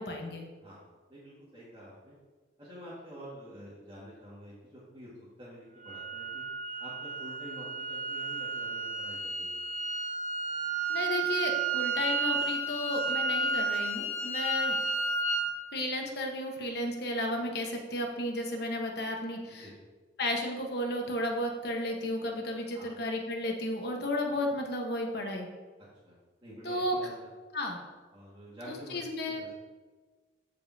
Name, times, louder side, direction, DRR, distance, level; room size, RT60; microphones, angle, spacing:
voice 1, 0.0-0.4 10.9-14.8 15.7-19.7 20.2-25.5 26.6-27.0 27.5-27.8 28.7-29.4, left 1 dB, 60° left, 1 dB, 1.2 m, -33 dB
voice 2, 0.6-2.1 2.6-5.1 5.4-6.4 6.8-9.6 19.6-19.7 22.7-23.0 26.0-26.2 26.4-27.1 28.1-29.0 29.3-29.5, equal, 25° right, -10 dB, 1.9 m, -48 dB
sound 1, 5.9-15.5, right 3 dB, 40° right, 0.9 m, -32 dB
14.5 x 5.3 x 2.8 m, 1.4 s
head